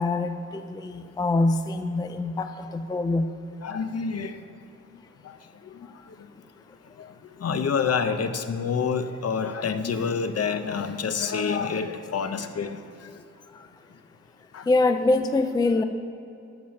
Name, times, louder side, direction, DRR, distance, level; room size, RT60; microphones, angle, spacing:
voice 1, 0.0-3.3 13.5-13.6 14.7-15.8, left 2 dB, 15° left, 8 dB, 0.3 m, -24 dB
voice 2, 3.6-4.4 5.2-5.4 5.6-5.9 7.0-13.1 14.5-14.7, left 6 dB, 55° left, 10 dB, 0.7 m, -28 dB
13.0 x 7.3 x 6.3 m, 2.7 s
wide cardioid pair, 160°, 30 cm